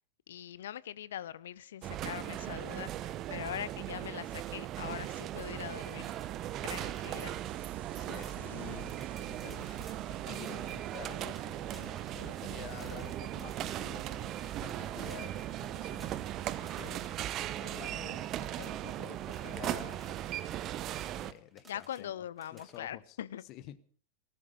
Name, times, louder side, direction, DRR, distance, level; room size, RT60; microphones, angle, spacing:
voice 1, 0.3-6.1 6.6-7.4 21.7-23.4, left 11 dB, 60° left, 0.7 m, -42 dB
sound 1, 1.8-21.3, right 12 dB, 35° right, 0.9 m, -38 dB
sound 2, 4.6-5.0 5.8-7.2 7.6-7.7 7.9-22.0 22.3-22.8, right 3 dB, 10° right, 3.7 m, -58 dB
sound 3, 6.8-16.8, right 11 dB, 55° right, 1.9 m, -54 dB
voice 2, 7.9-17.1 17.6-20.4 21.2-22.2 22.5-23.2 23.5-23.8, left 14 dB, 40° left, 1.1 m, -50 dB
18.0 x 15.0 x 5.2 m
figure-of-eight pair, 90°, 0 cm